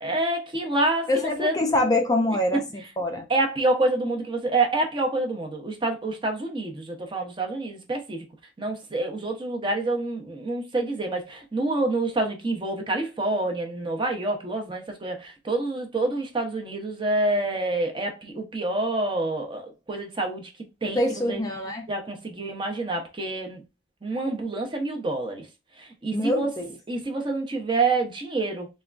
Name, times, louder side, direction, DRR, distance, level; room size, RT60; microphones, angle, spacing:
voice 1, 0.0-1.5 3.3-8.2 8.6-20.5 20.8-21.0 21.3-21.4 21.9-23.6 24.0-25.5 25.8-26.5 26.9-28.7, right 2 dB, 25° right, 0.6 m, -27 dB
voice 2, 1.1-3.3 20.9-21.8 26.1-26.7, left 1 dB, 20° left, 0.3 m, -25 dB
3.4 x 2.2 x 2.3 m
head